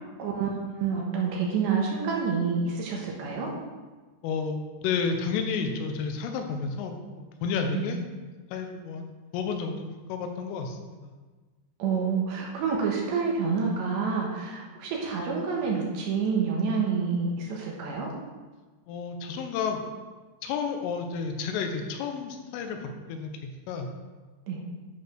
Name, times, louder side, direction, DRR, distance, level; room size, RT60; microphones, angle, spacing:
voice 1, 0.2-0.5 0.8-3.5 7.7-7.9 11.8-18.1 24.5-24.6, right 5 dB, 70° right, -2 dB, 3.2 m, -28 dB
voice 2, 4.2-8.0 8.5-11.1 18.9-19.8 20.4-23.9, left 5 dB, 85° left, 4 dB, 3.5 m, -31 dB
10.5 x 4.8 x 6.2 m, 1.3 s
omnidirectional pair, 5.7 m